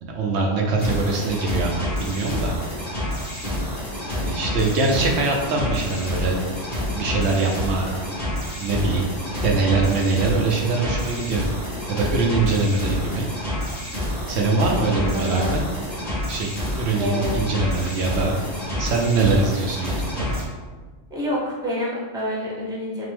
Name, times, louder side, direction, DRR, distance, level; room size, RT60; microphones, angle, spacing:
voice 1, 0.0-1.7 2.0-2.5 4.2-6.4 6.9-7.9 8.6-9.1 9.4-11.5 11.9-13.3 14.3-15.6 16.3-18.3 18.8-20.3, right 3 dB, 70° right, 0 dB, 0.8 m, -23 dB
sound 1, 0.8-20.4, left 1 dB, 45° left, 1.8 m, -28 dB
voice 2, 14.9-15.5 17.0-17.4 21.1-23.1, equal, 5° right, -5 dB, 0.8 m, -27 dB
5.8 x 2.0 x 3.4 m, 1.4 s
omnidirectional pair, 1.2 m